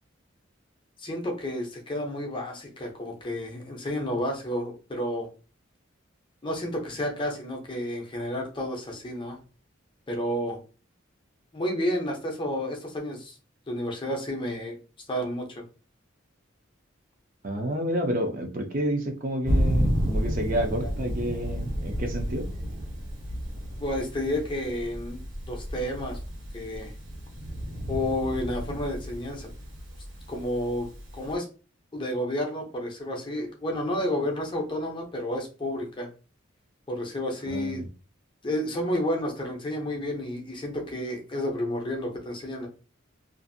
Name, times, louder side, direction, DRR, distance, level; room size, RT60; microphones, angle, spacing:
voice 1, 1.0-5.3 6.4-9.4 10.1-10.6 11.5-13.4 13.7-14.8 15.1-15.6 20.8-20.9 23.8-25.2 25.5-26.2 26.5-26.9 27.9-29.5 30.3-31.5 31.9-36.1 36.9-37.8 38.4-42.7, left 1 dB, 25° left, 1 dB, 0.5 m, -31 dB
voice 2, 17.4-22.5 37.5-37.9, right 1 dB, 40° right, 4 dB, 0.5 m, -29 dB
Thunder, 19.4-31.3, equal, 75° right, 1.3 m, -31 dB
2.6 x 2.5 x 2.5 m, 0.35 s
head